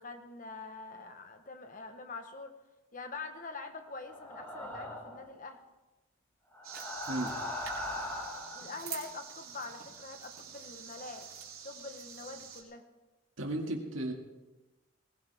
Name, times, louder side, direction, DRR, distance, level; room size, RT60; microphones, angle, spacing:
voice 1, 0.0-2.5 2.9-5.6 8.5-11.3 11.6-12.8, left 3 dB, 40° left, 6 dB, 1.3 m, -44 dB
sound 1, 4.1-5.2 6.5-8.7, left 1 dB, 10° left, 4.1 m, -39 dB
sound 2, 6.6-12.6, right 7 dB, 90° right, 3.2 m, -46 dB
voice 2, 13.4-14.1, right 1 dB, 70° right, 2 dB, 2.3 m, -34 dB
19.5 x 17.0 x 3.6 m, 1.1 s
head